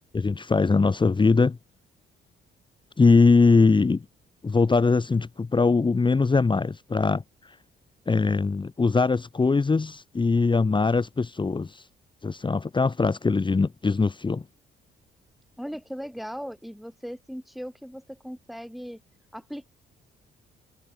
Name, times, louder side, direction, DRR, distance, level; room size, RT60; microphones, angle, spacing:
voice 1, 0.1-1.6 3.0-4.0 4.4-7.6 8.1-11.9 12.2-14.4, left 4 dB, 25° left, 1.4 m, -21 dB
voice 2, 15.6-19.0 19.3-19.7, equal, ahead, 7.3 m, -38 dB
cardioid pair, 90°, 20 cm